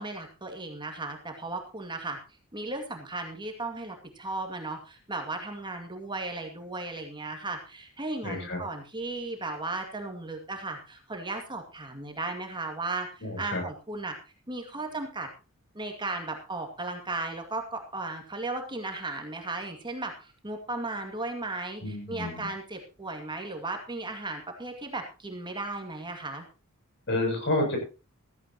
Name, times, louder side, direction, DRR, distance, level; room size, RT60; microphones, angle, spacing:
voice 1, 0.0-2.2 2.5-14.1 14.5-15.3 15.7-26.5, right 2 dB, 20° right, 4 dB, 2.2 m, -36 dB
voice 2, 8.2-8.6 13.2-13.6 21.8-22.5 27.1-27.8, left 2 dB, 55° left, 3 dB, 7.7 m, -29 dB
15.5 x 14.5 x 3.0 m, 0.31 s
head